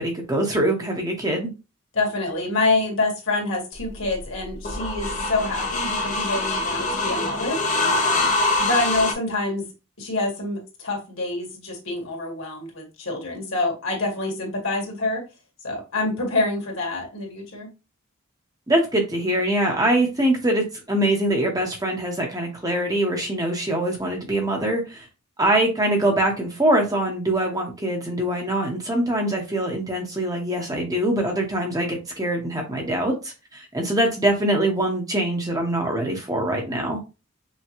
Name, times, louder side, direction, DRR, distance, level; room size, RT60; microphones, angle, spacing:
voice 1, 0.0-1.5 18.7-25.1 25.4-37.0, right 1 dB, 15° right, 0.9 m, -23 dB
voice 2, 1.9-7.6 8.0-8.3 8.6-9.6 10.0-15.2 15.6-17.7, left 2 dB, 70° left, 1.8 m, -26 dB
sound 1, 3.8-9.1, left 2 dB, 35° left, 0.6 m, -24 dB
5.6 x 2.2 x 3.0 m
head